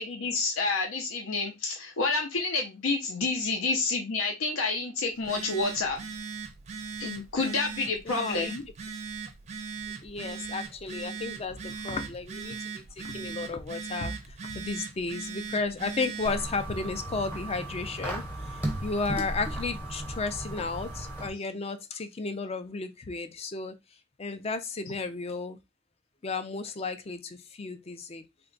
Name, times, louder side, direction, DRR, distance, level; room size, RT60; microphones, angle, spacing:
voice 1, 0.0-6.1 7.0-8.6, left 3 dB, 80° left, 0.6 m, -29 dB
Telephone, 5.1-16.4, right 5 dB, 30° right, 0.5 m, -39 dB
voice 2, 8.1-8.5 10.0-23.7 24.2-25.6 26.2-28.2, left 3 dB, 30° left, 0.4 m, -34 dB
sound 1, 16.2-21.3, right 1 dB, 10° left, 0.8 m, -36 dB
3.3 x 2.2 x 3.8 m
head